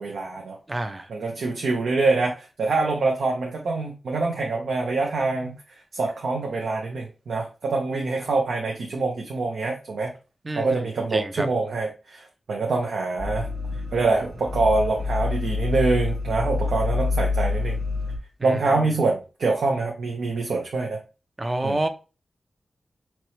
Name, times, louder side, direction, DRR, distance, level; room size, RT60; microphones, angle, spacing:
voice 1, 0.0-0.6 1.1-5.5 5.9-10.1 10.6-13.5 13.9-17.8 18.4-21.0 21.6-21.8, right 3 dB, 85° right, 0.7 m, -25 dB
voice 2, 0.7-1.1 10.4-11.5 18.4-18.8 21.4-21.9, right 1 dB, 25° right, 0.5 m, -29 dB
sound 1, 13.2-18.2, left 3 dB, 40° right, 0.8 m, -27 dB
4.3 x 2.9 x 3.1 m
wide cardioid pair, 120°, 0 cm